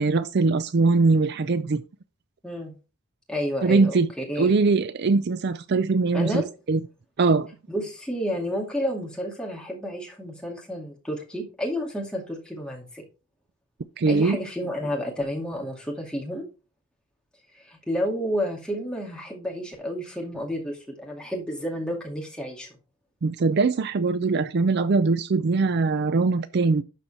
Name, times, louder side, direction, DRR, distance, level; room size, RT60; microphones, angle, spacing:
voice 1, 0.0-1.8 3.6-4.1 4.4-6.4 6.7-6.8 7.2-7.5 14.0-14.4 23.2-26.8, right 4 dB, 50° right, 0.4 m, -21 dB
voice 2, 2.4-2.7 3.3-4.5 6.1-6.5 7.7-13.0 14.1-16.4 17.6-22.7, equal, 5° left, 2.3 m, -31 dB
11.5 x 4.3 x 4.3 m
head